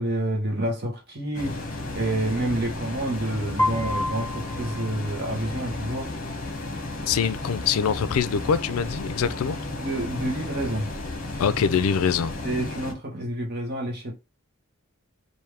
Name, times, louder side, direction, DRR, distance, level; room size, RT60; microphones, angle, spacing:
voice 1, 0.0-1.5 1.9-6.1 9.8-10.9 12.4-14.1, right 1 dB, 45° right, 1.1 m, -28 dB
sound 1, 1.3-12.9, left 2 dB, 40° left, 1.0 m, -33 dB
Piano, 3.6-5.6, left 1 dB, 10° left, 0.4 m, -30 dB
voice 2, 7.1-9.6 11.4-12.3, left 7 dB, 80° left, 0.4 m, -24 dB
3.5 x 2.6 x 4.6 m
head